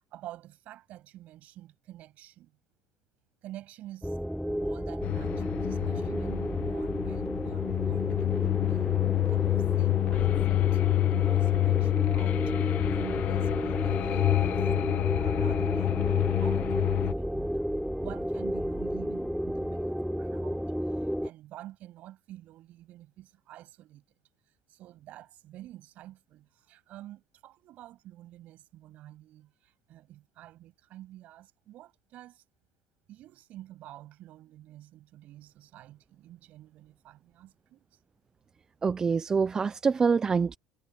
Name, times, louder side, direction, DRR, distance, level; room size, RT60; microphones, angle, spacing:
voice 1, 0.1-2.5 3.4-4.2 4.6-10.8 11.1-12.4 12.8-17.7 18.0-24.0 24.5-32.4 33.1-38.0, right 14 dB, 55° right, 7.8 m, -48 dB
sound 1, 4.0-21.3, equal, ahead, 4.6 m, -32 dB
sound 2, 5.0-17.1, left 16 dB, 50° left, 1.3 m, -27 dB
voice 2, 38.8-40.6, right 5 dB, 20° right, 0.4 m, -25 dB
cardioid pair, 135°, 3 cm